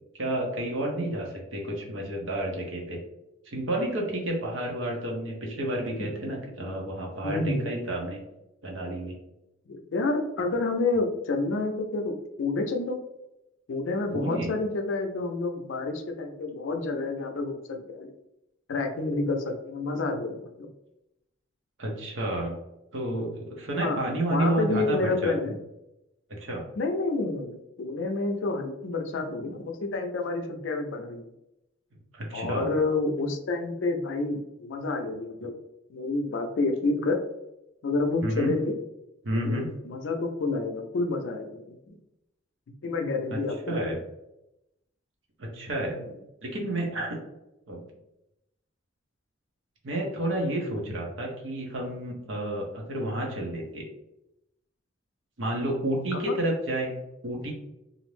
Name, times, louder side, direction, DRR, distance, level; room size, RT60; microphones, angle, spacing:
voice 1, 0.2-3.0 3.5-8.2 8.6-9.2 14.1-14.5 21.8-22.6 22.9-25.3 26.3-26.6 32.1-32.7 38.2-38.5 39.2-39.7 43.3-43.4 43.7-44.0 45.4-45.9 46.4-47.2 47.7-47.9 49.8-53.8 55.4-57.5, right 1 dB, 70° right, 0 dB, 0.7 m, -30 dB
voice 2, 7.2-7.9 9.7-13.0 13.7-18.2 18.7-20.7 23.8-24.0 24.3-25.5 26.8-31.3 32.3-35.5 35.9-37.2 37.8-38.8 39.4-42.0 42.8-44.0 45.9-46.1 56.1-56.3, left 3 dB, 70° left, 5 dB, 0.4 m, -29 dB
2.5 x 2.0 x 3.0 m, 0.89 s
head